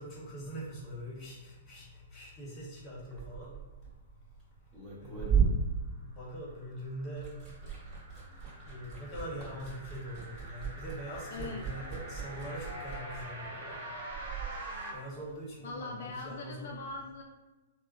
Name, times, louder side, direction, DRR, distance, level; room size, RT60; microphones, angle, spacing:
voice 1, 0.0-3.5 5.0-5.5 6.0-7.3 8.6-13.9 14.7-16.8, equal, 25° left, -5 dB, 1.2 m, -43 dB
Liquid, 3.0-6.7 7.0-14.6, right 6 dB, 20° right, 1.4 m, -35 dB
sound 1, 6.6-14.9, right 1 dB, 60° right, 0.9 m, -46 dB
voice 2, 11.3-11.6 15.6-17.2, left 3 dB, 65° left, 0 dB, 0.3 m, -41 dB
3.5 x 2.1 x 2.5 m, 1.1 s
hypercardioid pair, 120°, 0 cm